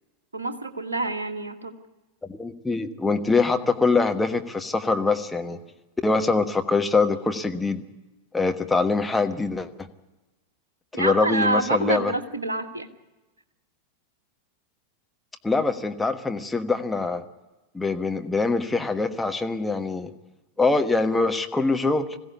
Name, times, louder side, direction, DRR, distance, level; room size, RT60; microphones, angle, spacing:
voice 1, 0.3-1.7 10.9-12.9, right 2 dB, 75° right, 7 dB, 1.5 m, -27 dB
voice 2, 2.3-5.6 6.0-7.8 8.3-9.9 10.9-12.1 15.4-17.2 17.7-20.1 20.6-22.1, left 3 dB, 10° left, 5 dB, 1.3 m, -23 dB
21.0 x 16.0 x 8.4 m, 1.1 s
figure-of-eight pair, 90°, 0 cm